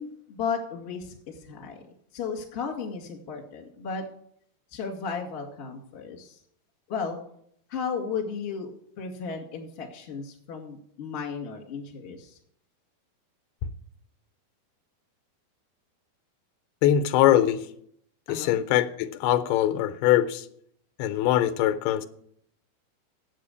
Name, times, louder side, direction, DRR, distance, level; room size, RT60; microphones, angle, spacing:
voice 1, 0.0-1.8 2.1-4.0 4.7-6.4 6.9-7.2 7.7-8.7 9.0-12.4 18.3-18.6, left 5 dB, 30° left, 1.3 m, -34 dB
voice 2, 16.8-17.7 18.3-20.5 21.0-22.1, left 12 dB, 85° left, 2.6 m, -22 dB
8.1 x 7.5 x 8.3 m
omnidirectional pair, 4.5 m